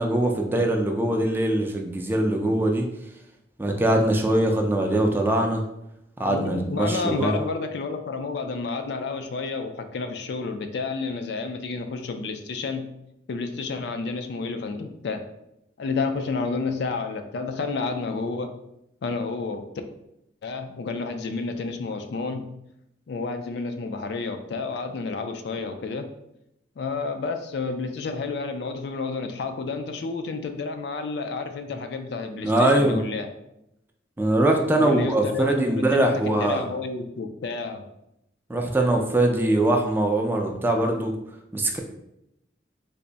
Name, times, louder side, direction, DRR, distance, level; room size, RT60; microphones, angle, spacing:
voice 1, 0.0-2.8 3.6-5.6 6.2-7.4 32.4-33.0 34.2-36.6 38.5-41.1 41.5-41.8, right 1 dB, 10° right, 2 dB, 0.3 m, -22 dB
voice 2, 6.3-12.9 13.3-15.2 15.8-18.5 19.0-19.6 20.4-22.4 23.1-26.1 26.8-33.3 34.8-37.8, left 4 dB, 65° left, 6 dB, 0.4 m, -30 dB
3.4 x 2.0 x 3.9 m, 0.83 s
head